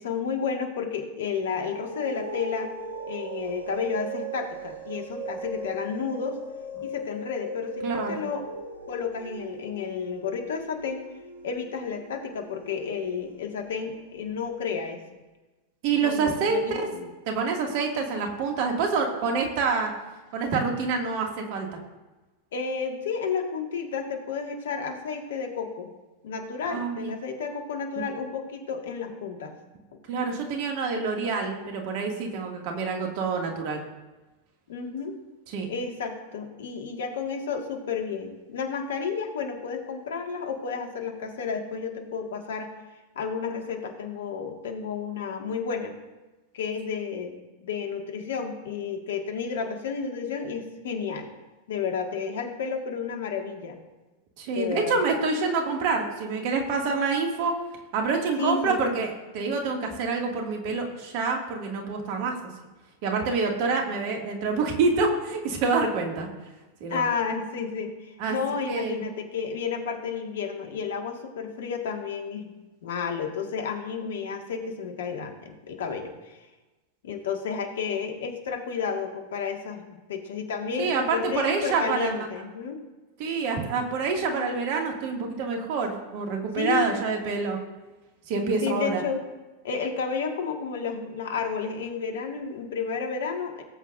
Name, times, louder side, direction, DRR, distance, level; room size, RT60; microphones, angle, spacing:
voice 1, 0.0-2.7 3.1-6.4 6.8-8.5 8.9-11.0 11.4-15.0 15.9-17.1 22.5-25.9 26.2-29.5 34.7-35.2 35.7-42.7 43.2-46.0 46.5-47.3 47.6-51.3 51.7-53.8 54.5-55.0 58.4-58.8 60.7-60.8 66.9-72.5 72.8-76.4 77.0-82.8 86.6-86.9 88.6-89.2 89.6-93.6, left 6 dB, 60° left, 4 dB, 1.8 m, -31 dB
sound 1, 1.4-14.2, right 2 dB, 90° right, 2.6 m, -39 dB
voice 2, 7.8-8.2 15.8-17.0 17.3-19.9 20.3-21.7 26.7-27.1 28.0-28.1 30.1-33.8 35.5-35.7 54.4-57.5 57.9-62.4 63.0-66.3 66.8-67.0 68.2-68.4 68.6-69.0 80.8-82.1 83.2-87.6 88.3-89.0, right 4 dB, 45° right, 2 dB, 2.2 m, -27 dB
18.0 x 8.2 x 2.6 m, 1.1 s
figure-of-eight pair, 90°, 0 cm